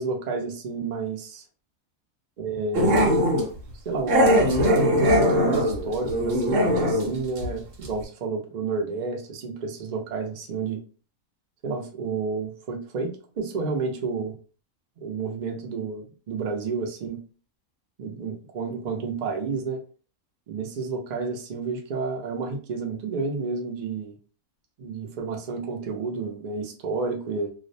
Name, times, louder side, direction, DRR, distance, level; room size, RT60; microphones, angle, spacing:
voice 1, 0.0-1.4 2.4-3.2 3.9-10.8 11.6-14.3 15.0-17.2 18.0-19.8 20.5-24.1 24.8-27.5, right 4 dB, 85° right, 2 dB, 0.4 m, -30 dB
Growling, 2.7-3.5 4.1-7.1 7.4-7.5 7.8-7.9, equal, 65° right, 0.9 m, -21 dB
2.4 x 2.1 x 2.6 m, 0.37 s
omnidirectional pair, 1.5 m